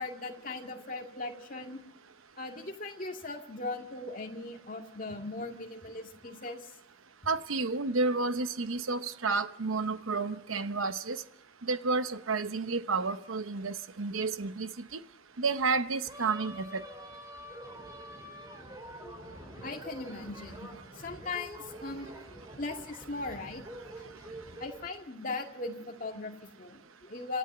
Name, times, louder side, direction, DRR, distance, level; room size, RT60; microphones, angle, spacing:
voice 1, 0.0-1.8 2.4-6.7 19.0-19.2 19.6-20.7 21.0-23.6 24.0-24.1 24.6-27.4, left 3 dB, 40° left, 2.2 m, -39 dB
voice 2, 7.3-11.2 11.7-14.7 15.4-16.8, right 4 dB, 90° right, 0.9 m, -31 dB
sound 1, 16.1-24.9, right 1 dB, 20° right, 3.5 m, -46 dB
27.0 x 13.5 x 8.0 m
head